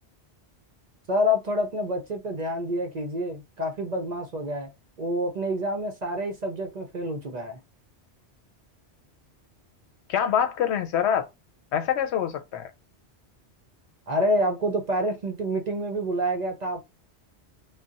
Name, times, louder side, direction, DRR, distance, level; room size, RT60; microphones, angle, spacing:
voice 1, 1.1-4.7 5.0-7.6 14.1-16.8, equal, 50° right, 0.6 m, -27 dB
voice 2, 10.1-11.3 11.7-12.7, left 9 dB, 80° left, 0.8 m, -25 dB
2.4 x 2.1 x 3.9 m
omnidirectional pair, 1.1 m